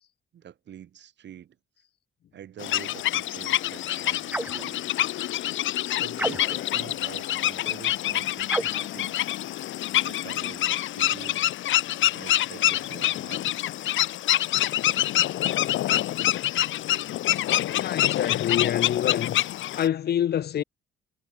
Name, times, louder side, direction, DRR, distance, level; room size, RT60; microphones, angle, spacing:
voice 1, 0.3-1.6 2.3-4.9 5.9-9.2 10.0-11.4 12.1-13.4, right 10 dB, 65° right, 2.7 m, -45 dB
sound 1, 2.6-19.9, left 13 dB, 75° left, 1.2 m, -26 dB
sound 2, 4.3-4.7 6.1-6.7 8.5-8.9, right 1 dB, 10° right, 0.6 m, -31 dB
voice 2, 17.7-19.4 19.8-20.6, left 10 dB, 55° left, 0.7 m, -26 dB
cardioid pair, 90°, 20 cm